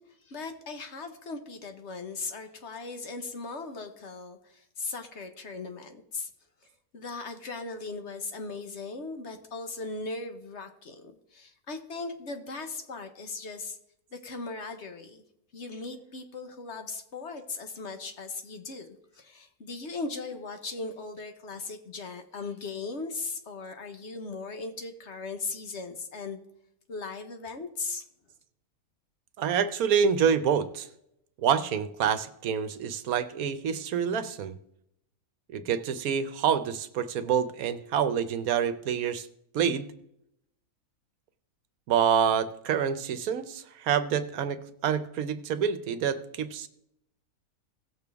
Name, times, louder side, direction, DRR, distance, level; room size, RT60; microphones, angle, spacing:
voice 1, 0.2-6.3 6.9-13.8 14.1-15.2 15.5-26.4 26.9-28.0, left 3 dB, 50° left, 6 dB, 1.3 m, -38 dB
voice 2, 29.4-30.9 31.4-34.6 35.5-39.3 39.5-39.9 41.9-46.7, right 7 dB, 75° right, 12 dB, 1.2 m, -27 dB
17.5 x 6.8 x 3.5 m, 0.77 s
omnidirectional pair, 1.5 m